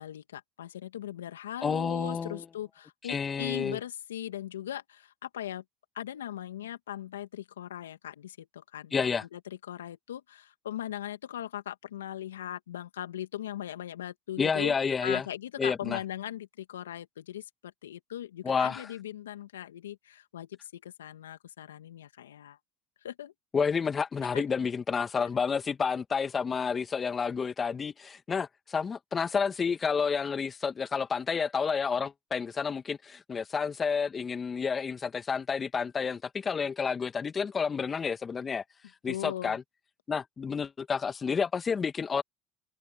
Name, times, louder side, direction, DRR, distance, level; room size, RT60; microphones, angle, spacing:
voice 1, 0.0-5.6 5.9-14.8 15.0-22.6 23.0-23.3 24.3-24.4 39.1-39.6, left 11 dB, 90° left, 2.2 m, -39 dB
voice 2, 1.6-2.4 3.1-3.8 8.9-9.2 14.4-15.2 15.6-16.0 18.4-18.8 23.5-38.6 39.0-39.6 40.1-42.2, left 6 dB, 30° left, 2.0 m, -30 dB
hypercardioid pair, 70°, 0 cm